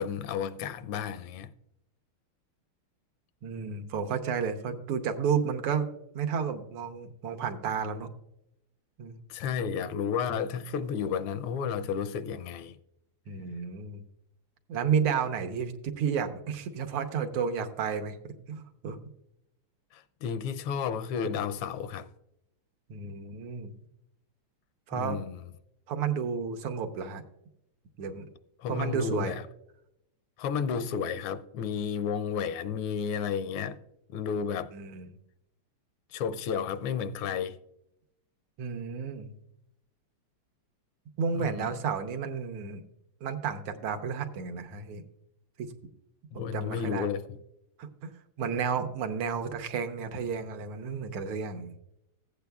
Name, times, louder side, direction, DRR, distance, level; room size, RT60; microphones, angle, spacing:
voice 1, 0.0-1.5 9.3-12.8 19.9-22.1 24.9-25.4 28.6-29.5 30.4-33.8 34.1-34.7 36.1-37.6 41.3-41.7 46.3-47.4, left 7 dB, 85° left, 1.5 m, -32 dB
voice 2, 3.4-5.9 6.1-8.1 9.0-9.2 13.3-14.0 14.7-19.0 22.9-23.7 24.9-25.2 25.9-27.2 28.0-28.3 28.7-29.3 34.7-35.1 38.6-39.3 41.2-42.8 43.2-45.0 45.6-45.7 46.4-47.1 47.8-48.1 48.4-51.7, right 6 dB, 85° right, 1.8 m, -32 dB
15.0 x 8.5 x 2.3 m
omnidirectional pair, 2.4 m